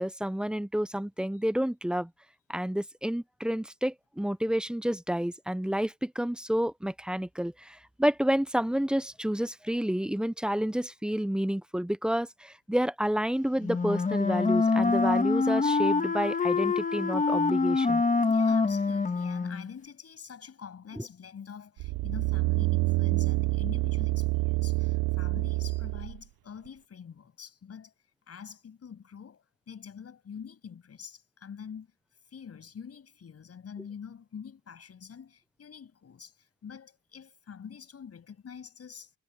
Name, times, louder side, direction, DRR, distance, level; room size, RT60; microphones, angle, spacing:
voice 1, 0.0-2.1 2.5-18.0, equal, ahead, 0.5 m, -29 dB
Wind instrument woodwind instrument, 13.6-19.7, left 4 dB, 20° left, 1.6 m, -25 dB
voice 2, 18.3-27.9 28.3-31.9 32.3-39.1, left 7 dB, 40° left, 7.4 m, -45 dB
sound 1, 21.8-26.2 26.7-26.8, right 21 dB, 80° right, 0.6 m, -27 dB
cardioid pair, 150°, 36 cm